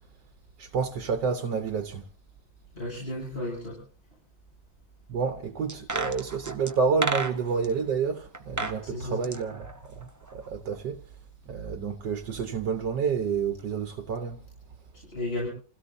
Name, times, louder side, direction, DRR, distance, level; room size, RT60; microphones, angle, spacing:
voice 1, 0.6-2.1 5.1-11.0 11.5-14.4, right 5 dB, 70° right, 1.7 m, -29 dB
voice 2, 2.7-3.8 8.8-9.3 15.1-15.5, left 1 dB, 30° left, 7.7 m, -33 dB
sound 1, 5.7-7.7 8.3-8.8 9.1-10.5 10.7-10.8, right 3 dB, 30° right, 0.3 m, -32 dB
29.0 x 16.5 x 2.7 m
omnidirectional pair, 2.0 m